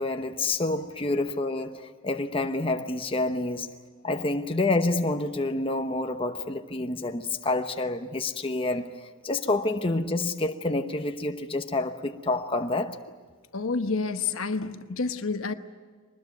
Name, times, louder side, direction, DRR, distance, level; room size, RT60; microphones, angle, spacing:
voice 1, 0.0-3.7 4.0-8.9 9.2-13.0, left 2 dB, 25° left, 1.0 m, -28 dB
voice 2, 13.5-15.5, left 4 dB, 70° left, 1.1 m, -29 dB
23.5 x 20.5 x 9.2 m
head